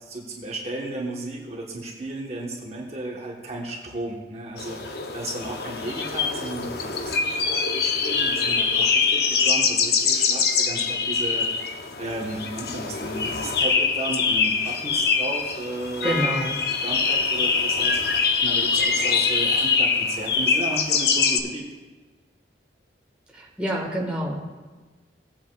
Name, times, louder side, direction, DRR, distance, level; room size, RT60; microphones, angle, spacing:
voice 1, 0.0-16.3 16.8-21.6, right 2 dB, 35° right, -1 dB, 1.1 m, -34 dB
sound 1, 4.6-21.4, left 5 dB, 60° left, 0.7 m, -24 dB
voice 2, 16.0-16.6 23.3-24.4, right 1 dB, 5° right, -3 dB, 1.4 m, -27 dB
17.5 x 8.2 x 2.3 m, 1.3 s
head